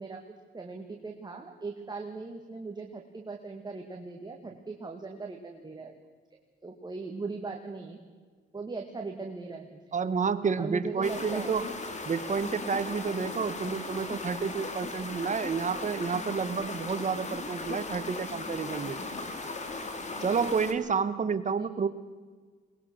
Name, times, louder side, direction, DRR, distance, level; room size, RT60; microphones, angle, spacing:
voice 1, 0.0-6.0 6.6-8.0 8.5-9.8 10.6-11.6 21.6-21.7, right 3 dB, 20° right, 2 dB, 2.2 m, -39 dB
voice 2, 9.9-11.7 12.0-19.0 20.2-21.9, right 5 dB, 40° right, 12 dB, 1.4 m, -30 dB
sound 1, 11.0-20.7, left 3 dB, 35° left, 2.9 m, -37 dB
22.0 x 20.5 x 6.4 m, 1.5 s
cardioid pair, 90°, 20 cm